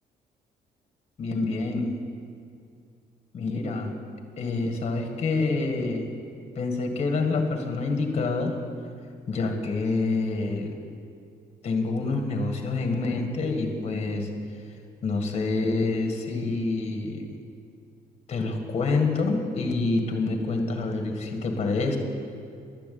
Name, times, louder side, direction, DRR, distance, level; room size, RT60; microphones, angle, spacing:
voice 1, 1.2-2.0 3.3-3.9 4.4-6.1 6.6-8.6 9.3-10.7 11.6-14.3 15.0-17.3 18.3-22.0, left 3 dB, 40° left, 4 dB, 1.9 m, -27 dB
11.5 x 11.5 x 8.6 m, 2.4 s
cardioid pair, 150°, 16 cm